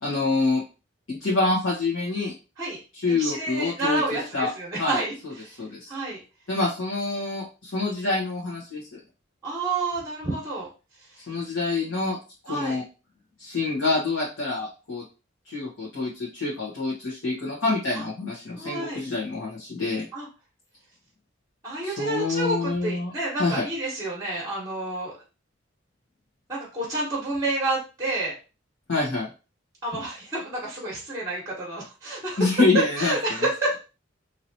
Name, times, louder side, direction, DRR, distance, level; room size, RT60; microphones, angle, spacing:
voice 1, 0.0-0.6 1.1-2.3 3.0-4.0 4.3-4.5 4.8-5.0 5.2-5.3 5.6-5.9 6.5-9.0 11.3-12.2 12.4-12.8 13.4-15.0 15.4-20.0 21.8-23.1 23.4-23.6 28.9-29.3 32.4-33.5, left 3 dB, 70° left, -7 dB, 1.3 m, -26 dB
voice 2, 3.1-5.1 5.4-5.6 5.9-6.2 9.4-10.7 12.5-12.8 18.5-19.0 20.1-20.3 21.6-25.1 26.5-28.3 29.8-32.5 33.0-33.8, right 2 dB, 15° right, -4 dB, 1.0 m, -29 dB
3.0 x 2.9 x 2.7 m, 0.31 s
head